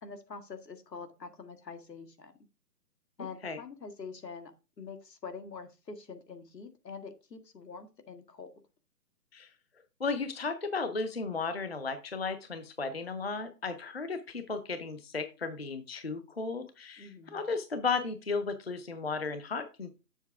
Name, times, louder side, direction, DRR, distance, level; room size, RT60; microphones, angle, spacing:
voice 1, 0.0-2.3 3.2-8.5 17.0-17.4, left 5 dB, 85° left, 7 dB, 1.8 m, -45 dB
voice 2, 10.0-19.9, left 4 dB, 40° left, 9 dB, 0.6 m, -34 dB
7.2 x 6.4 x 3.5 m, 0.29 s
hypercardioid pair, 170°, 49 cm